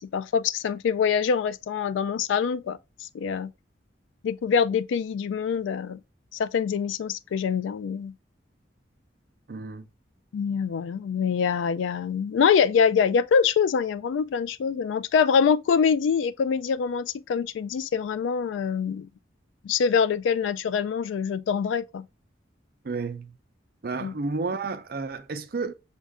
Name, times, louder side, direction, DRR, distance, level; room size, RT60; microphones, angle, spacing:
voice 1, 0.0-2.8 3.1-3.5 4.2-6.0 6.3-8.1 10.3-19.1 19.6-22.0 24.0-24.1, left 6 dB, 80° left, 0.3 m, -24 dB
voice 2, 9.5-9.9 22.8-23.4 23.8-25.7, right 4 dB, 50° right, 0.5 m, -31 dB
6.3 x 2.4 x 3.3 m
head